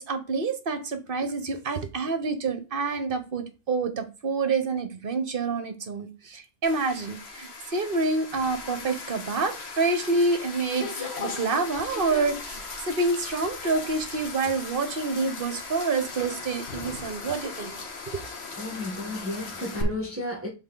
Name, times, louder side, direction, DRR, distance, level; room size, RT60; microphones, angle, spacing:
voice 1, 0.0-17.8, right 3 dB, 45° right, 1.2 m, -28 dB
sound 1, 6.6-19.8, left 4 dB, 55° left, 1.4 m, -38 dB
voice 2, 18.6-20.5, left 1 dB, 10° right, 1.2 m, -33 dB
7.7 x 4.1 x 3.8 m
omnidirectional pair, 1.4 m